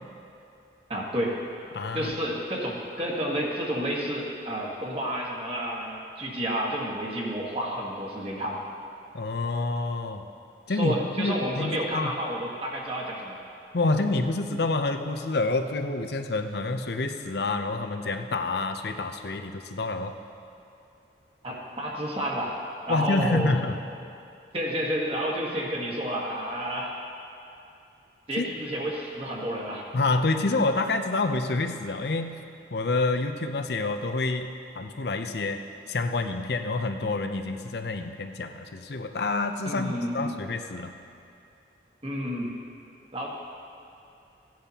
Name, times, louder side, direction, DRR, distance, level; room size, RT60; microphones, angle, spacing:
voice 1, 0.9-1.4 1.9-8.6 10.7-13.4 21.4-22.5 22.9-23.5 24.5-26.9 28.3-29.8 39.6-40.3 42.0-42.5 43.1-43.3, equal, 30° right, -3 dB, 1.5 m, -30 dB
voice 2, 1.7-2.1 9.1-10.2 10.7-12.1 13.7-20.1 22.9-23.8 28.4-28.5 29.9-32.4 32.7-35.6 35.9-40.9, left 3 dB, 65° left, 7 dB, 0.6 m, -28 dB
16.5 x 10.5 x 2.9 m, 2.6 s
head